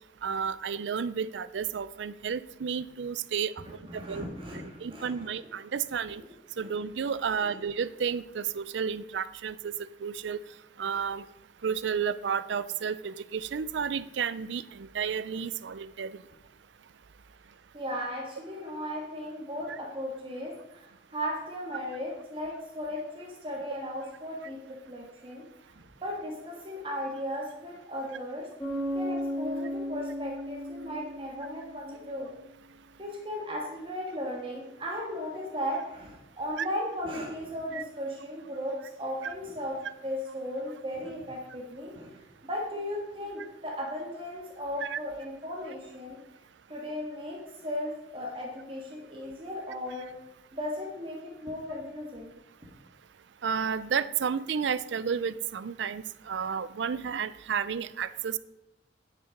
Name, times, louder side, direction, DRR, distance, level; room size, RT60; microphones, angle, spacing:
voice 1, 0.2-3.5 3.9-4.2 4.8-6.2 6.6-9.7 10.0-10.4 10.8-11.2 11.6-16.2 36.6-36.7 37.7-37.8 39.2-39.3 44.8-45.0 53.4-58.4, right 7 dB, 75° right, 16 dB, 0.4 m, -32 dB
voice 2, 3.8-5.3 6.2-6.3 6.6-6.7 7.3-7.6 17.7-25.4 25.7-28.5 28.9-32.3 33.0-42.1 42.4-46.2 46.7-50.1 50.5-52.3, equal, 30° right, -1 dB, 1.7 m, -36 dB
Bass guitar, 28.6-32.2, equal, 10° left, 3.8 m, -35 dB
9.9 x 6.7 x 5.1 m, 0.95 s
head